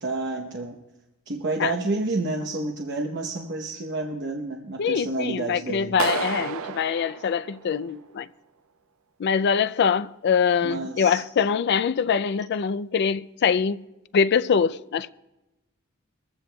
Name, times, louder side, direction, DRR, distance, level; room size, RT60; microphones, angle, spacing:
voice 1, 0.0-0.8 1.3-6.1 10.6-11.2, right 2 dB, 60° right, 0.9 m, -29 dB
voice 2, 4.8-8.3 9.2-13.8 14.1-15.1, left 6 dB, 55° left, 0.4 m, -23 dB
Clapping, 6.0-8.0, right 6 dB, 80° right, 0.5 m, -31 dB
21.5 x 15.0 x 2.3 m
head